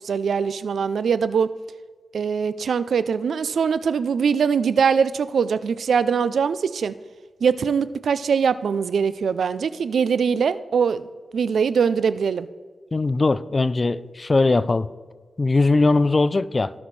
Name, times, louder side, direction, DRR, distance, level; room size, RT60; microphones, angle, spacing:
voice 1, 0.0-1.5 2.1-6.9 7.4-11.0 11.3-12.5, right 6 dB, 90° right, 15 dB, 0.4 m, -22 dB
voice 2, 12.9-14.9 15.4-16.7, left 3 dB, 40° left, 16 dB, 0.4 m, -20 dB
18.0 x 6.0 x 3.2 m, 1.4 s
cardioid pair, 75°, 0 cm